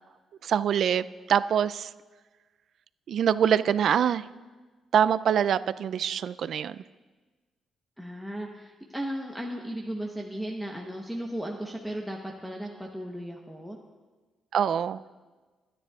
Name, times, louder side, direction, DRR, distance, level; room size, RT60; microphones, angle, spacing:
voice 1, 0.4-1.9 3.1-4.3 4.9-6.8 14.5-15.0, right 8 dB, 65° right, 15 dB, 0.3 m, -24 dB
voice 2, 8.0-13.8, equal, ahead, -1 dB, 0.9 m, -36 dB
23.5 x 10.0 x 2.4 m, 1.3 s
cardioid pair, 115°, 0 cm